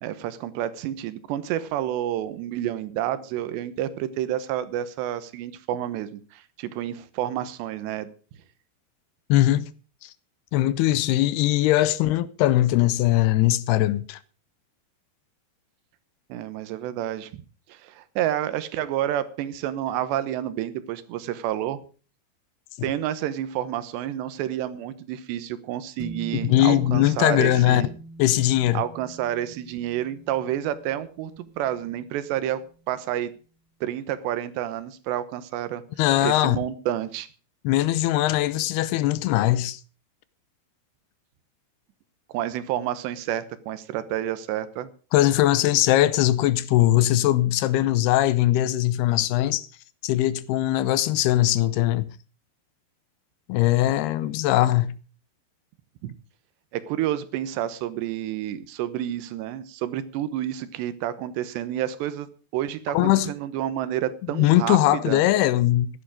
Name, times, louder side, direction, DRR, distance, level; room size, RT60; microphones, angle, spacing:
voice 1, 0.0-8.1 16.3-17.4 17.7-21.8 22.8-27.9 28.7-32.6 32.9-33.3 33.8-35.8 36.2-37.3 42.3-44.9 56.0-56.1 56.7-62.3 62.5-65.2, right 12 dB, 85° right, 3.2 m, -29 dB
voice 2, 9.3-9.7 10.0-10.1 10.5-14.2 26.4-27.9 28.2-28.8 36.0-36.6 37.6-39.8 45.1-49.7 50.0-52.1 53.5-55.0 62.9-63.3 64.3-66.0, left 14 dB, 80° left, 2.6 m, -21 dB
sound 1, 26.0-32.6, right 2 dB, 40° right, 2.0 m, -42 dB
14.5 x 11.0 x 5.0 m
omnidirectional pair, 4.9 m